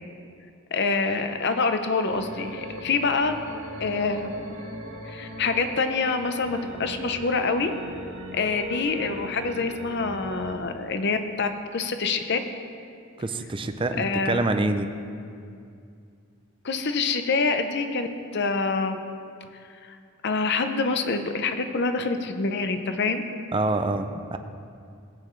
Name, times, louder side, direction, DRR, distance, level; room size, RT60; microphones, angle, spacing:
voice 1, 0.7-3.4 3.8-4.3 5.1-7.7 8.3-12.4 14.0-14.4 16.6-19.0 19.8-20.0 20.2-23.2, left 4 dB, 50° left, 8 dB, 0.7 m, -26 dB
sound 1, 2.1-10.5, equal, 60° right, 1.9 m, -39 dB
voice 2, 13.2-14.9 23.5-24.4, right 2 dB, 25° right, 8 dB, 0.5 m, -26 dB
17.0 x 8.8 x 3.2 m, 2.4 s
head